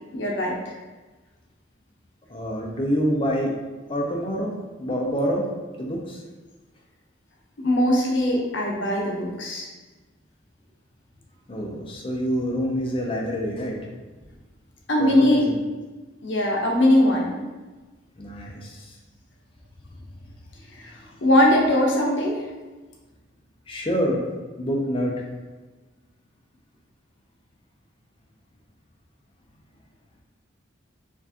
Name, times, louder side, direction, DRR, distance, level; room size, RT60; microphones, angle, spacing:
voice 1, 0.1-0.8 7.6-9.7 14.9-15.4 16.2-17.3 20.7-20.9 21.2-22.5, left 1 dB, 70° left, -2 dB, 0.8 m, -21 dB
voice 2, 2.3-3.5 3.9-4.5 4.8-5.5 5.8-6.2 11.5-13.9 15.0-15.6 18.2-18.9 23.7-24.2 24.6-25.2, equal, 25° left, -1 dB, 0.5 m, -26 dB
4.4 x 2.5 x 2.8 m, 1.2 s
head